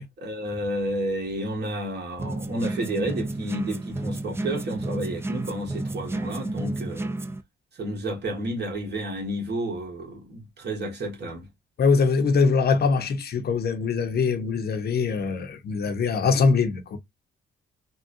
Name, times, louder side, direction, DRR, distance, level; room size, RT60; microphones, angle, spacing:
voice 1, 0.2-7.1 7.8-11.5, right 1 dB, 60° right, 1.6 m, -31 dB
sound 1, 2.2-7.4, right 2 dB, 10° right, 0.4 m, -31 dB
voice 2, 11.8-17.0, left 5 dB, 55° left, 0.7 m, -22 dB
3.6 x 2.2 x 2.5 m
cardioid pair, 90°, 20 cm